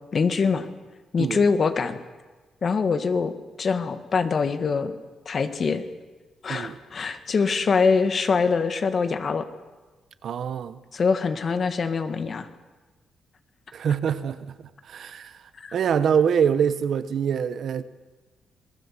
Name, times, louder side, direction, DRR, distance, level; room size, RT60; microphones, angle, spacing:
voice 1, 0.1-0.7 1.1-2.0 2.6-3.3 3.6-5.0 5.3-5.8 6.4-9.5 10.9-12.5 15.6-15.7, left 5 dB, 35° left, 1.8 m, -24 dB
voice 2, 10.2-10.8 13.7-14.6 14.8-15.4 15.7-17.8, right 7 dB, 55° right, 1.1 m, -24 dB
26.5 x 20.0 x 7.5 m
cardioid pair, 160°, 0 cm